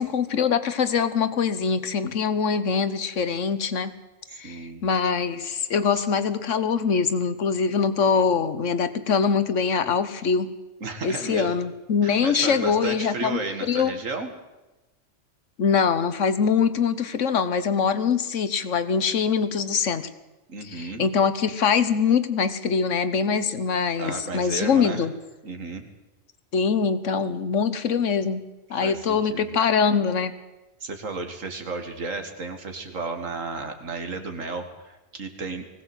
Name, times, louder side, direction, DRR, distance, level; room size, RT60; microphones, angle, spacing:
voice 1, 0.0-4.0 4.3-10.5 11.0-13.9 15.6-20.1 20.6-25.1 26.5-30.3, left 6 dB, 70° left, 12 dB, 1.4 m, -23 dB
voice 2, 4.3-4.8 10.8-11.6 12.0-14.3 20.5-21.0 24.0-25.0 25.4-25.9 28.8-29.5 30.8-35.8, right 3 dB, 85° right, 6 dB, 2.4 m, -33 dB
20.0 x 17.0 x 8.0 m, 1.1 s
omnidirectional pair, 1.3 m